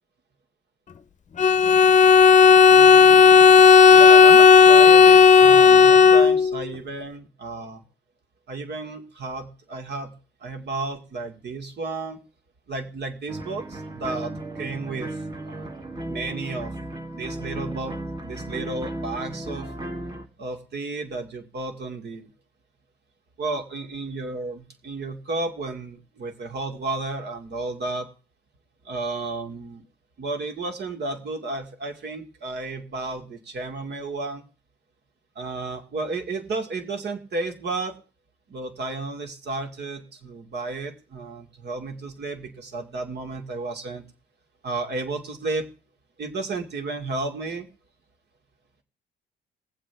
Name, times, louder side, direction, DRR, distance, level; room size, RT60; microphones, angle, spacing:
Bowed string instrument, 1.4-6.6, left 6 dB, 40° left, 0.8 m, -12 dB
voice 1, 2.7-3.5 3.9-7.8 8.5-10.1 10.4-12.2 12.7-15.2 15.5-15.7 16.1-16.7 17.1-19.7 20.4-22.3 23.4-28.1 28.8-29.8 30.2-34.4 35.4-37.9 38.5-44.0 44.6-45.7 46.2-47.7, right 3 dB, 55° right, 4 dB, 2.4 m, -32 dB
sound 1, 13.3-20.3, right 1 dB, 20° right, 1.8 m, -35 dB
21.0 x 7.7 x 3.5 m, 0.36 s
cardioid pair, 90°, 20 cm